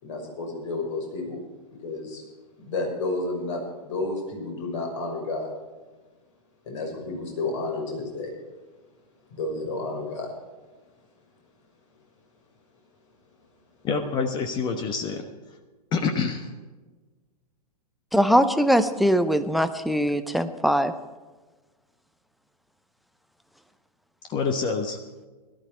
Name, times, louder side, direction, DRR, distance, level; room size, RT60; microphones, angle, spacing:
voice 1, 0.0-1.4 1.8-2.2 2.6-5.5 6.7-8.3 9.3-10.3, left 2 dB, 45° left, 1 dB, 5.9 m, -31 dB
voice 2, 13.8-15.3 15.9-16.5 24.3-25.0, left 5 dB, 20° left, 6 dB, 1.2 m, -26 dB
voice 3, 18.1-20.9, equal, ahead, 10 dB, 0.7 m, -21 dB
17.5 x 13.0 x 4.4 m, 1.3 s
figure-of-eight pair, 110°, 20 cm